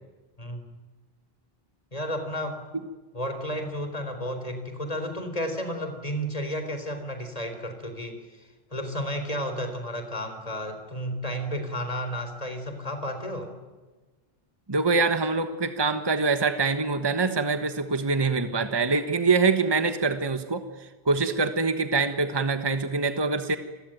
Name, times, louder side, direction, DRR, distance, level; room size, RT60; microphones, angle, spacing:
voice 1, 1.9-2.7 3.1-13.5, equal, 40° left, 7 dB, 4.1 m, -32 dB
voice 2, 14.7-23.6, right 4 dB, 25° right, 9 dB, 1.3 m, -24 dB
28.5 x 21.0 x 9.2 m, 1.3 s
omnidirectional pair, 1.0 m